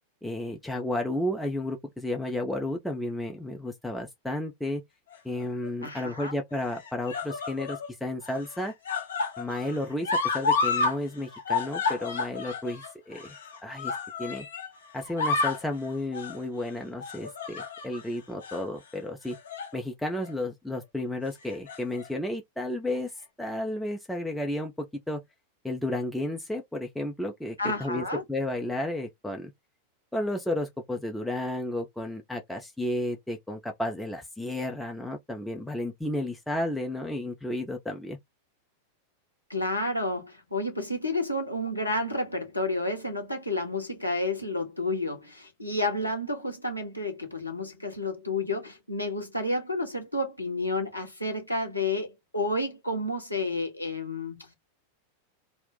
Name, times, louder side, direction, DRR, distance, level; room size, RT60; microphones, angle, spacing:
voice 1, 0.2-4.8 5.2-8.7 9.4-13.4 13.6-14.5 14.9-19.4 19.7-23.1 23.4-25.2 25.6-29.5 30.1-38.2, left 1 dB, 5° left, 0.5 m, -32 dB
sound 1, 5.1-5.7 6.6-7.9 8.2-11.0 11.2-14.7 15.0-15.7 16.1-16.4 17.0-18.0 18.4-18.6 19.3-19.8 20.1-20.3 21.4-22.1 23.0-23.1, left 4 dB, 65° left, 0.7 m, -31 dB
voice 2, 5.8-6.3 27.6-28.2 39.5-54.5, left 2 dB, 85° left, 1.0 m, -30 dB
2.4 x 2.1 x 3.8 m
figure-of-eight pair, 90°, 0 cm